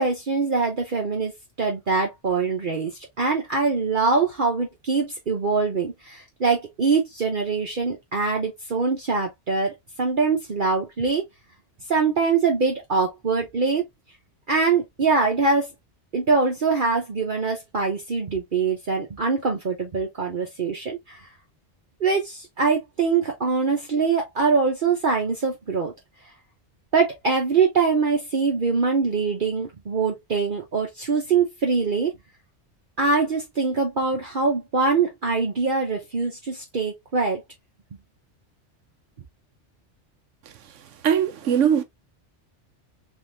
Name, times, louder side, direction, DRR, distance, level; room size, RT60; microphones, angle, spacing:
voice 1, 0.0-1.3 1.6-2.9 3.2-11.2 11.9-13.8 14.5-15.7 16.1-21.3 22.0-25.9 26.9-32.1 33.0-37.4, right 4 dB, 45° right, 1.0 m, -23 dB
voice 2, 41.0-41.8, right 8 dB, 90° right, 1.1 m, -20 dB
3.6 x 3.5 x 2.6 m
omnidirectional pair, 1.2 m